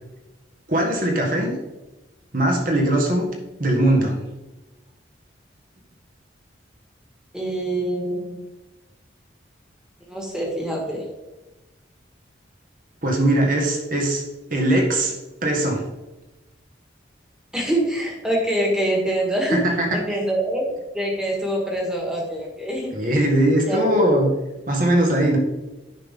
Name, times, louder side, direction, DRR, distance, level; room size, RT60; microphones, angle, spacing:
voice 1, 0.7-1.5 2.3-3.3 3.6-4.2 13.0-14.2 14.5-15.1 15.4-15.8 19.5-20.0 22.9-24.3 24.7-25.4, right 1 dB, 45° right, 0 dB, 1.8 m, -20 dB
voice 2, 7.3-8.5 10.1-11.1 17.5-19.6 19.9-20.7 20.9-23.1 23.7-23.9, right 1 dB, 5° right, -1 dB, 1.8 m, -25 dB
10.0 x 5.8 x 3.8 m, 1.1 s
head